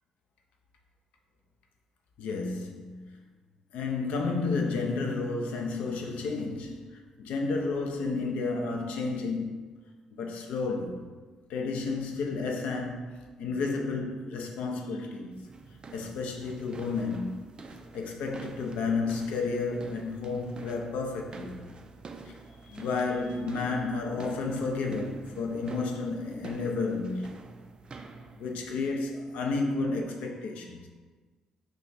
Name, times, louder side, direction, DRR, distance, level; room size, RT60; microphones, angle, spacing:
voice 1, 2.2-3.2 3.7-9.6 10.1-11.1 11.5-15.5 15.9-17.4 17.9-21.6 22.3-22.4 22.7-27.4 28.4-30.9, left 3 dB, 60° left, 0.4 m, -31 dB
sound 1, 15.3-28.8, right 3 dB, 35° right, 0.3 m, -47 dB
2.9 x 2.3 x 3.9 m
figure-of-eight pair, 40°, 3 cm